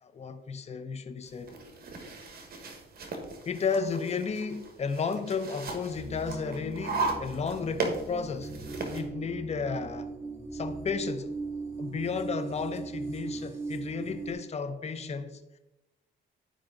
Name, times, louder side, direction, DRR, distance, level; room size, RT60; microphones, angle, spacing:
voice 1, 0.0-1.6 3.5-8.5 8.9-10.1 10.5-11.4 11.8-15.4, left 5 dB, 35° left, 0.7 m, -33 dB
sound 1, 1.3-9.0, right 3 dB, 50° right, 1.5 m, -37 dB
sound 2, 5.9-14.3, right 3 dB, 15° right, 2.4 m, -39 dB
11.0 x 5.0 x 3.8 m
cardioid pair, 90°, 20 cm